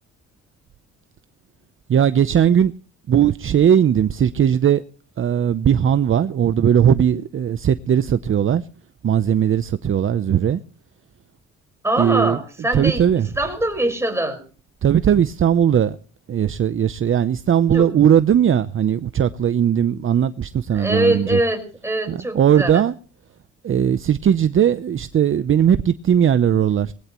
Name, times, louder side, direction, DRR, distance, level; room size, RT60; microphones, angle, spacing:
voice 1, 1.9-2.7 3.1-4.8 5.2-8.6 9.0-10.6 12.0-12.4 12.7-13.3 14.8-16.0 16.3-21.4 22.1-22.9 23.6-26.9, right 9 dB, 45° right, 0.7 m, -18 dB
voice 2, 11.8-14.4 17.7-17.9 20.7-22.8, right 1 dB, 10° right, 5.0 m, -23 dB
20.0 x 19.5 x 3.0 m
cardioid pair, 90°, 30 cm